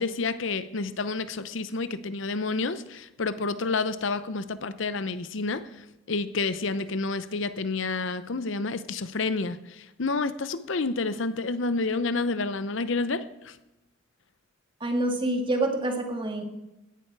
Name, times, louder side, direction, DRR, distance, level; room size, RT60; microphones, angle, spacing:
voice 1, 0.0-13.6, left 3 dB, 65° left, 13 dB, 0.7 m, -29 dB
voice 2, 14.8-16.4, right 1 dB, 25° right, 4 dB, 1.8 m, -27 dB
17.0 x 11.0 x 4.8 m, 0.95 s
head